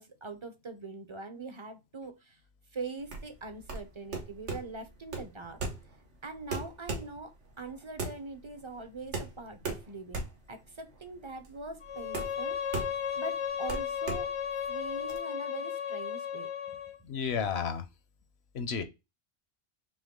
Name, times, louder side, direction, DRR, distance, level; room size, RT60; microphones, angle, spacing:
voice 1, 0.0-2.4 2.7-5.6 6.2-12.8 13.1-14.3 14.7-16.5, right 3 dB, 30° right, 0.6 m, -42 dB
sound 1, 3.0-15.2, right 3 dB, 80° right, 1.5 m, -39 dB
Bowed string instrument, 11.8-17.0, left 8 dB, 40° left, 0.5 m, -35 dB
voice 2, 17.0-17.9 18.5-18.8, left 6 dB, 65° left, 1.0 m, -32 dB
6.1 x 2.3 x 3.6 m
omnidirectional pair, 1.2 m